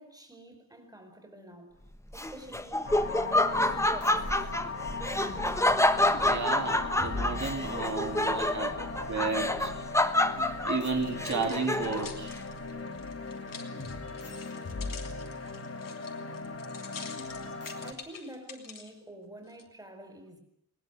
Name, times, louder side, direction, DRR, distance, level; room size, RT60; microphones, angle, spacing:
voice 1, 0.0-1.8 2.1-2.9 3.4-4.5 17.8-20.4, right 1 dB, 10° right, 4.8 m, -48 dB
Laughter, 2.1-12.2, left 1 dB, 10° left, 1.3 m, -28 dB
sound 1, 2.8-17.9, left 3 dB, 45° left, 2.5 m, -38 dB
voice 2, 6.1-8.8 9.1-9.7 10.6-12.3, right 4 dB, 55° right, 3.1 m, -33 dB
sound 2, 10.9-18.9 19.5-19.6, left 5 dB, 75° left, 3.1 m, -47 dB
20.5 x 20.0 x 9.4 m
wide cardioid pair, 130°, 33 cm